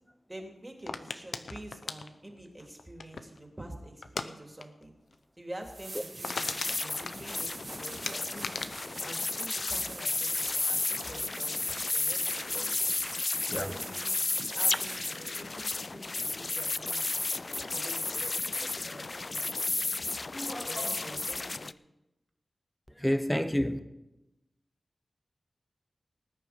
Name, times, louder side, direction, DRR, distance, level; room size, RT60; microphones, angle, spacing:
voice 1, 0.3-4.9 5.4-8.5 9.0-12.8 13.5-14.2 14.5-19.9 20.6-21.7, right 1 dB, 20° right, 3.0 m, -47 dB
sound 1, 0.9-3.4 4.0-4.3 4.6-4.8 5.1-5.2 5.6-5.7 6.0-7.6 8.1-10.1 10.4-10.8, left 4 dB, 90° left, 0.8 m, -38 dB
sound 2, 5.1-5.2 5.6-15.4 18.2-18.3, right 2 dB, 50° right, 3.0 m, -44 dB
sound 3, 6.3-21.7, left 3 dB, 50° left, 0.4 m, -33 dB
voice 2, 20.3-20.9 23.0-23.8, equal, 5° left, 1.0 m, -31 dB
19.5 x 9.8 x 5.2 m
wide cardioid pair, 80°, 0 cm